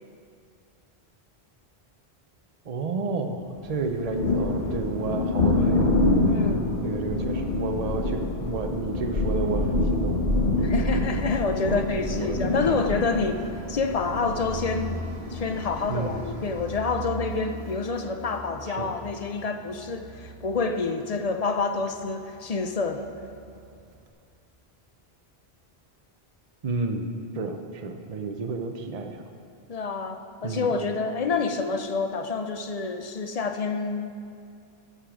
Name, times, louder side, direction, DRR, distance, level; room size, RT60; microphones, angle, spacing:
voice 1, 2.6-5.9 6.8-10.2 11.6-12.4 12.7-13.4 15.9-16.2 18.7-18.9 26.6-29.2 30.4-30.7, right 4 dB, 40° right, 5 dB, 0.7 m, -31 dB
Thunder, 3.7-16.9, left 2 dB, 85° left, 2.1 m, -26 dB
voice 2, 6.2-6.7 10.6-15.0 15.3-23.1 29.7-34.1, left 4 dB, 45° left, 7 dB, 0.6 m, -28 dB
Fixed-wing aircraft airplane, 10.6-24.1, right 2 dB, 80° right, 1.2 m, -41 dB
13.5 x 6.7 x 4.9 m, 2.4 s
omnidirectional pair, 1.1 m